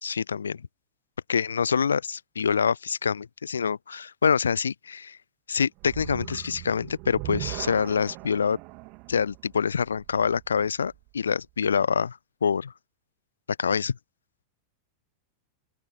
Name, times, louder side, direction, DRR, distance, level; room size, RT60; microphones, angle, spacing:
voice 1, 0.0-0.6 1.3-5.2 5.5-8.6 9.1-12.7 13.6-14.0, left 6 dB, 70° left, 0.4 m, -26 dB
sound 1, 5.8-11.1, right 29 dB, 45° right, 2.8 m, -40 dB
open air
figure-of-eight pair, 90°, 0 cm